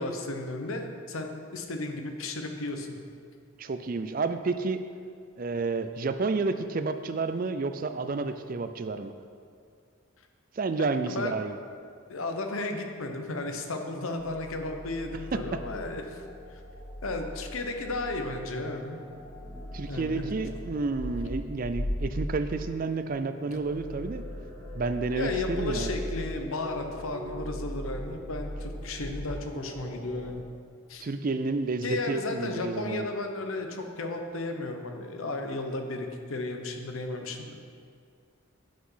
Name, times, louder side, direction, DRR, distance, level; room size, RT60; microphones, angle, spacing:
voice 1, 0.0-2.9 11.0-11.4 12.1-16.2 17.0-19.0 19.9-20.3 25.1-30.4 30.9-31.1 31.8-37.6, left 2 dB, 75° left, 5 dB, 0.9 m, -34 dB
voice 2, 3.6-4.8 5.4-9.1 10.6-11.6 19.7-24.2 24.7-25.9 31.0-33.1, right 3 dB, 40° right, 10 dB, 0.4 m, -30 dB
sound 1, 14.2-30.3, equal, 35° left, 2.1 m, -39 dB
8.7 x 5.9 x 5.6 m, 2.2 s
head